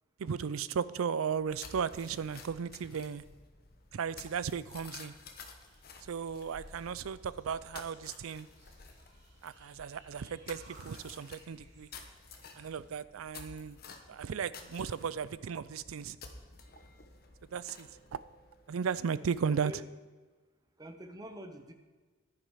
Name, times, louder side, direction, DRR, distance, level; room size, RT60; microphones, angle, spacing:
voice 1, 0.2-3.2 3.9-5.1 6.1-8.5 9.4-11.9 12.6-13.8 14.1-16.2 17.5-18.2 18.7-19.7, right 6 dB, 85° right, 17 dB, 0.4 m, -35 dB
sound 1, 1.2-19.2, left 4 dB, 45° left, 1.1 m, -53 dB
sound 2, 5.6-12.9, right 2 dB, 60° right, 2.9 m, -63 dB
voice 2, 19.5-19.9 20.8-21.7, equal, 20° right, 6 dB, 0.8 m, -45 dB
11.0 x 9.7 x 4.9 m, 1.3 s
head